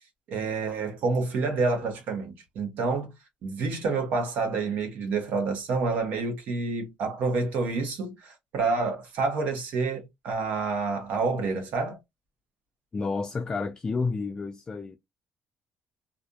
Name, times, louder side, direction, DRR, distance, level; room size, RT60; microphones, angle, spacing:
voice 1, 0.3-3.1 3.4-12.0, right 4 dB, 70° right, 1.1 m, -28 dB
voice 2, 12.9-15.0, left 4 dB, 30° left, 0.4 m, -30 dB
2.5 x 2.5 x 2.3 m
cardioid pair, 100°, 3 cm